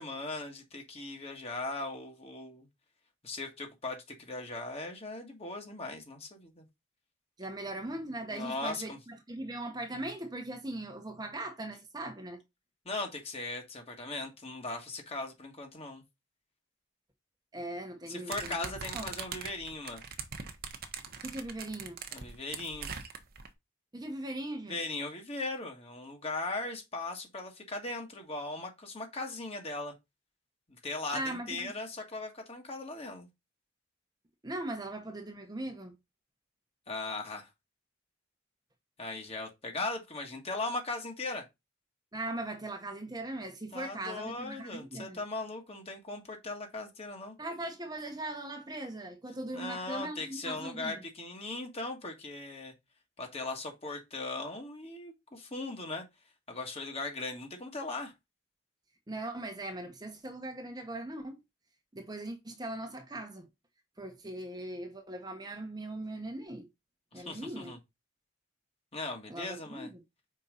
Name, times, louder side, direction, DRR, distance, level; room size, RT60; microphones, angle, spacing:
voice 1, 0.0-2.7 3.2-6.7 8.3-9.0 12.9-16.0 18.1-20.0 22.1-22.9 24.7-29.9 30.7-33.3 36.9-37.5 39.0-41.5 43.7-47.4 49.5-52.7 53.2-56.0 56.5-58.1 67.1-67.8 68.9-69.9, left 2 dB, 30° left, 1.6 m, -38 dB
voice 2, 7.4-12.4 17.5-19.1 21.2-22.0 23.9-24.8 31.1-31.7 34.4-36.0 42.1-45.2 47.4-51.0 59.1-61.4 61.9-63.5 64.0-66.7 67.1-67.8 69.3-70.0, right 1 dB, 20° right, 1.0 m, -39 dB
sound 1, 18.3-23.5, right 6 dB, 50° right, 1.0 m, -41 dB
5.5 x 4.4 x 3.9 m
head